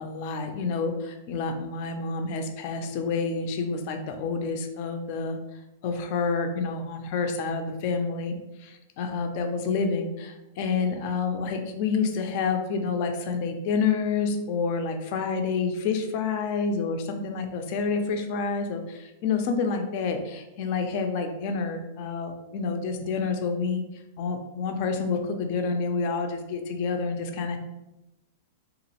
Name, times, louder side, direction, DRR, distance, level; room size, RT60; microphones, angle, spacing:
voice 1, 0.0-5.4 5.8-23.8 24.2-27.6, left 4 dB, 45° left, 5 dB, 0.4 m, -28 dB
3.0 x 2.4 x 2.8 m, 0.95 s
supercardioid pair, 150°, 0 cm